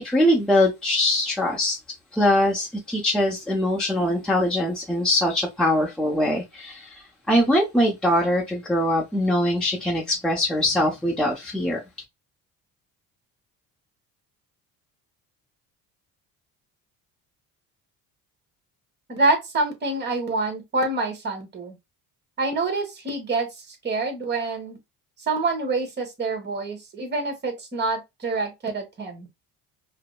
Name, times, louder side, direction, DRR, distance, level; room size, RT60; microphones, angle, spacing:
voice 1, 0.0-1.8 2.1-7.0 7.3-11.8, left 1 dB, ahead, 0.8 m, -22 dB
voice 2, 19.1-21.8 22.4-24.8 25.3-29.3, right 3 dB, 30° right, 1.4 m, -26 dB
4.9 x 2.1 x 2.3 m
cardioid pair, 120°, 34 cm